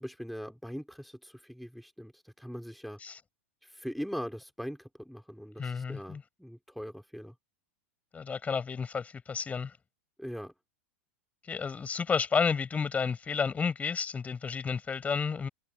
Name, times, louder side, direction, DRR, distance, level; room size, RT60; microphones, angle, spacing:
voice 1, 0.0-3.0 3.6-7.3 10.2-10.5, equal, ahead, 4.4 m, -41 dB
voice 2, 5.6-6.2 8.1-9.7 11.5-15.5, left 5 dB, 20° left, 6.0 m, -31 dB
hypercardioid pair, 110°, 7 cm